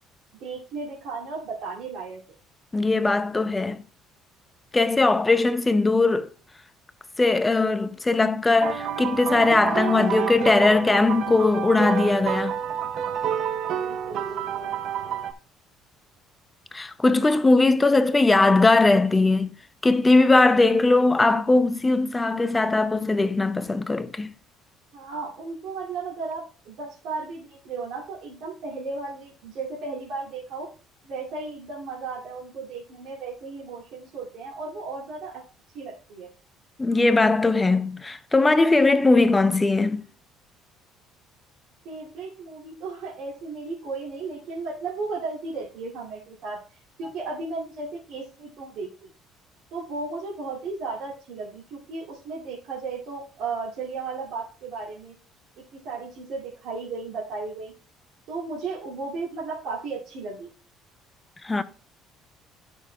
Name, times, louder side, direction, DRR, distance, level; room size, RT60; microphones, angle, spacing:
voice 1, 0.4-2.2 13.8-14.7 24.9-30.7 31.0-35.4 35.7-36.3 41.8-46.6 47.0-49.1 49.7-55.1 55.7-57.7 58.3-60.5, right 4 dB, 65° right, 2.5 m, -35 dB
voice 2, 2.7-3.8 4.7-6.3 7.2-12.6 16.7-19.5 19.8-24.3 36.8-40.1 61.4-61.6, left 3 dB, 10° left, 0.5 m, -20 dB
sound 1, 8.6-15.3, right 8 dB, 45° right, 0.6 m, -29 dB
12.5 x 6.1 x 2.3 m
cardioid pair, 170°, 0 cm